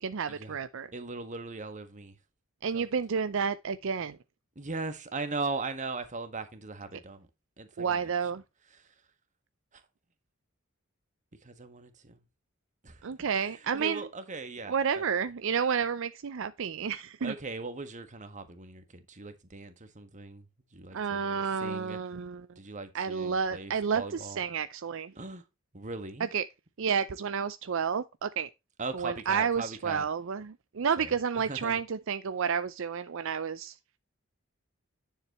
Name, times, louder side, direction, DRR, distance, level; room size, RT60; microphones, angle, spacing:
voice 1, 0.0-0.9 2.6-4.2 7.8-8.4 13.0-14.1 14.7-17.3 20.9-22.4 22.9-25.1 26.3-26.4 26.8-28.5 28.9-33.8, right 6 dB, 65° right, 0.5 m, -30 dB
voice 2, 0.9-2.2 2.7-2.9 4.5-7.3 7.6-8.0 8.7-8.9 9.7-9.8 11.4-12.2 12.8-13.1 13.4-15.0 17.2-22.0 22.5-24.4 25.1-25.5 25.7-26.3 28.8-30.1 31.0-31.8, right 3 dB, 35° right, 1.6 m, -39 dB
9.9 x 7.3 x 3.0 m
head